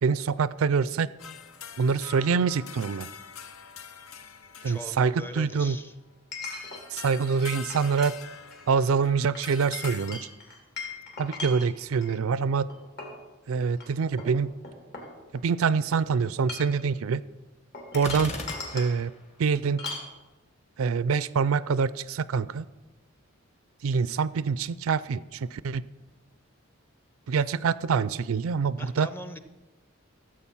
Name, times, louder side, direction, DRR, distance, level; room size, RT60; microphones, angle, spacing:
voice 1, 0.0-1.1 1.8-3.1 4.6-5.8 6.9-8.2 8.7-10.3 11.2-12.7 13.5-14.5 15.3-17.2 17.9-18.3 18.7-19.1 19.4-19.8 20.8-22.7 23.8-25.9 27.3-29.1, right 5 dB, 85° right, 18 dB, 0.4 m, -25 dB
sound 1, 1.2-5.7 6.4-10.1, left 6 dB, 80° left, 0.7 m, -44 dB
voice 2, 4.6-5.9 28.8-29.4, left 1 dB, 10° left, 10 dB, 0.6 m, -41 dB
Chink clink, 6.3-6.8 7.3-8.1 8.4-8.7 9.3-12.1 12.7-13.2 13.7-13.8 14.2-15.6 16.3-16.8 17.7-18.9 19.8-20.1, left 3 dB, 55° left, 2.8 m, -39 dB
Gunshot gunfire, 17.9-19.2, left 2 dB, 35° left, 1.4 m, -37 dB
14.5 x 7.8 x 5.6 m, 1.1 s
head